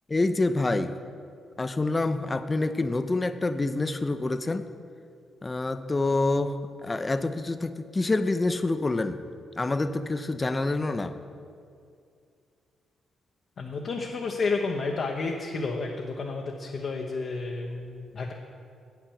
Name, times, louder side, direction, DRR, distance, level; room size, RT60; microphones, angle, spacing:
voice 1, 0.1-1.0 1.6-4.7 5.4-9.2 9.6-11.2, left 2 dB, 30° left, 11 dB, 0.6 m, -27 dB
voice 2, 13.6-18.3, left 3 dB, 60° left, 1 dB, 0.8 m, -31 dB
8.2 x 5.9 x 7.2 m, 2.4 s
supercardioid pair, 55°, 0 cm